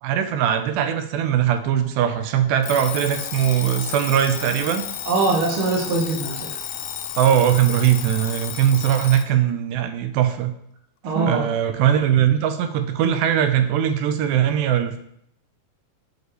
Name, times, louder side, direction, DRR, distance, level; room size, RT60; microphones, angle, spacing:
voice 1, 0.0-4.8 7.2-10.5 11.1-15.0, right 10 dB, 85° right, 8 dB, 2.4 m, -20 dB
Alarm, 2.6-9.3, left 10 dB, 80° left, 2.0 m, -32 dB
voice 2, 5.0-6.6 11.0-11.5, right 3 dB, 65° right, -1 dB, 1.3 m, -22 dB
6.2 x 5.1 x 3.1 m, 0.70 s
omnidirectional pair, 4.2 m